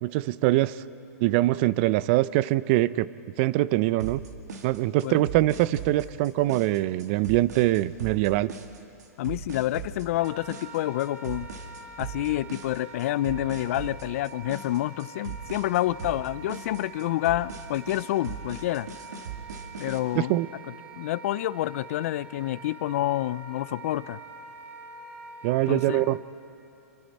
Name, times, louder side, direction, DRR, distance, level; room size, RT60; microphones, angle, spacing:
voice 1, 0.0-0.8 1.2-3.1 3.4-4.2 4.6-8.5 20.1-20.5 25.4-26.2, right 17 dB, 45° right, 18 dB, 0.6 m, -23 dB
sound 1, 4.0-20.0, right 6 dB, 80° right, 2.0 m, -40 dB
voice 2, 9.2-11.5 12.0-18.9 19.8-20.4 20.9-24.2 25.7-26.0, left 15 dB, 60° left, 18 dB, 0.5 m, -28 dB
Wind instrument woodwind instrument, 10.1-26.2, right 4 dB, 15° right, 1.5 m, -45 dB
27.0 x 23.5 x 4.3 m, 2.8 s
hypercardioid pair, 130°, 9 cm